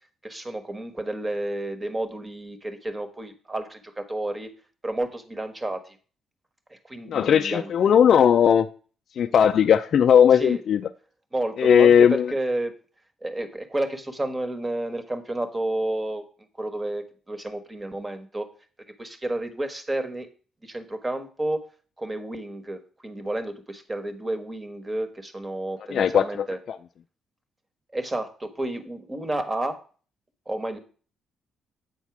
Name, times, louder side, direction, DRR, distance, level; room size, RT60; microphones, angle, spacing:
voice 1, 0.2-4.5 4.8-6.0 6.7-7.7 10.3-10.6 11.3-12.7 13.2-16.2 16.6-18.5 19.0-20.3 20.6-21.7 22.0-26.6 27.9-29.8 30.5-30.8, right 1 dB, 20° right, 1.3 m, -31 dB
voice 2, 7.1-8.7 9.2-10.8 11.6-12.3 25.9-26.5, left 8 dB, 60° left, 0.4 m, -17 dB
8.2 x 4.2 x 5.9 m
cardioid pair, 90°, 0 cm